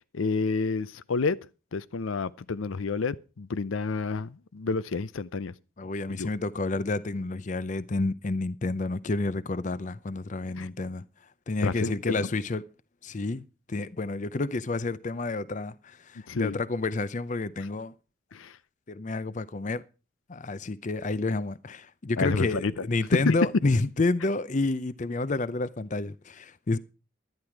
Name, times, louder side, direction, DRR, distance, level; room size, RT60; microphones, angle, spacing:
voice 1, 0.1-1.4 1.7-5.5 6.1-6.3 10.6-10.7 11.6-12.2 16.3-16.6 18.3-18.6 22.2-22.9 23.1-23.3, left 4 dB, 80° left, 0.6 m, -29 dB
voice 2, 5.8-11.0 11.5-12.6 13.0-17.9 18.9-19.8 20.3-26.8, left 3 dB, 40° left, 0.6 m, -29 dB
11.5 x 10.5 x 4.6 m
head